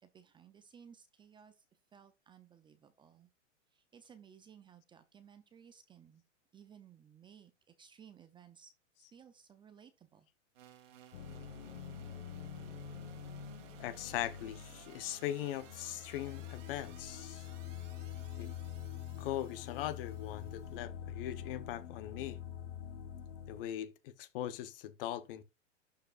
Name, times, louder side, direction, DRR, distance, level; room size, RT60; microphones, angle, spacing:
voice 1, 0.0-1.6 1.9-3.3 3.7-6.2 6.5-8.7 9.0-10.3, right 8 dB, 15° right, 0.5 m, -59 dB
sound 1, 10.5-20.8, right 9 dB, 75° right, 2.2 m, -59 dB
sound 2, 11.1-23.6, left 9 dB, 65° left, 1.3 m, -46 dB
voice 2, 13.8-17.5 18.4-18.5 19.2-22.4 23.5-25.4, left 12 dB, 50° left, 0.9 m, -40 dB
11.5 x 4.8 x 2.5 m
hypercardioid pair, 135°, 37 cm